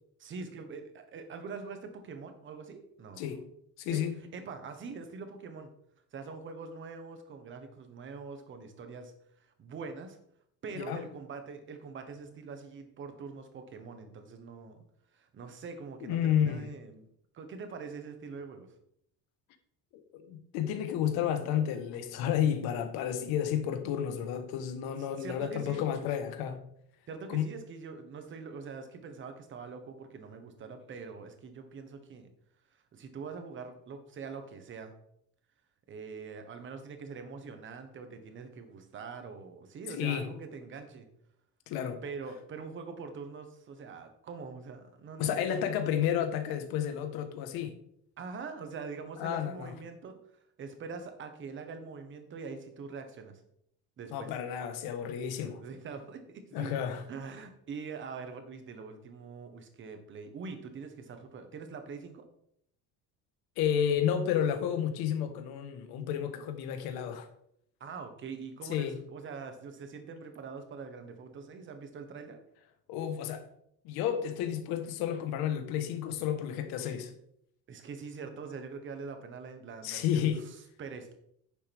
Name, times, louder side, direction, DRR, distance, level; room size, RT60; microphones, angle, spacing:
voice 1, 0.2-3.2 3.9-4.0 4.3-5.7 6.1-9.1 9.6-10.2 10.6-14.8 15.1-17.0 17.3-18.7 25.0-25.9 27.1-32.3 32.7-34.9 35.9-41.1 42.0-45.7 48.2-50.2 50.6-53.4 54.0-54.3 55.3-56.8 57.1-62.2 67.8-72.4 77.7-81.1, right 5 dB, 30° right, 1.2 m, -44 dB
voice 2, 3.8-4.1 10.7-11.0 16.0-16.7 20.1-26.7 27.3-27.5 39.9-40.3 41.7-42.0 45.2-47.7 49.2-49.7 54.1-55.6 56.5-57.0 63.6-67.3 68.7-69.0 72.9-73.4 73.8-77.1 79.8-80.4, left 9 dB, 70° left, 1.4 m, -31 dB
10.0 x 6.8 x 3.5 m
cardioid pair, 165°, 38 cm